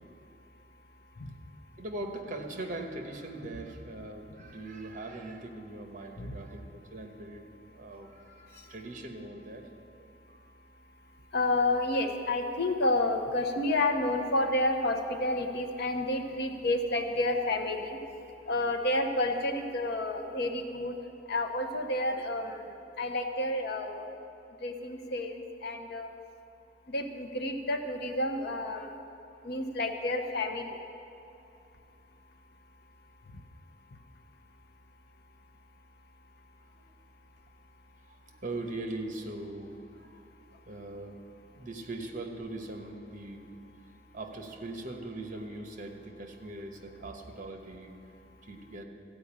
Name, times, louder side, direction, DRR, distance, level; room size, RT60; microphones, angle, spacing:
voice 1, 1.8-10.4 36.6-36.9 38.0-40.2 40.7-41.2 41.5-43.5 44.1-47.9 48.4-48.8, right 2 dB, 45° right, 3 dB, 1.1 m, -41 dB
voice 2, 11.3-18.0 18.5-21.0 21.3-24.1 24.6-26.1 26.9-28.9 29.4-30.8 33.3-33.4, left 1 dB, 60° left, 5 dB, 0.9 m, -30 dB
14.5 x 5.1 x 8.7 m, 2.7 s
head